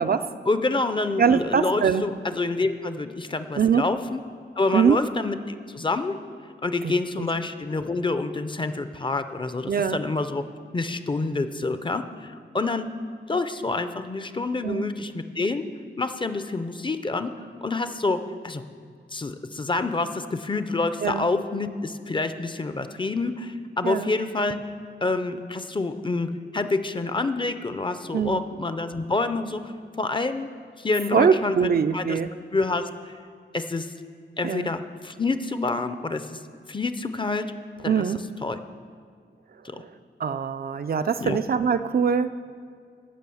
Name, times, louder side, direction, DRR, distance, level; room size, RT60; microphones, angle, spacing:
voice 1, 0.5-4.2 4.6-6.2 6.6-10.4 10.7-12.9 13.3-15.7 16.0-17.3 17.6-18.6 19.1-24.6 25.0-29.7 30.0-30.5 30.8-32.2 32.5-33.2 33.5-33.9 34.4-36.4 36.7-37.5 37.8-38.1 38.4-38.6 39.6-39.8 41.2-41.4, left 3 dB, 25° left, 10 dB, 0.5 m, -27 dB
voice 2, 1.2-2.0 3.6-3.8 4.7-5.0 6.8-7.3 9.7-10.0 14.6-14.9 21.0-21.3 23.8-24.1 28.1-28.4 31.1-32.3 34.4-34.7 37.9-38.2 39.7-39.9 40.2-42.4, right 7 dB, 50° right, 10 dB, 0.4 m, -23 dB
16.0 x 5.7 x 7.0 m, 2.2 s
wide cardioid pair, 165°, 19 cm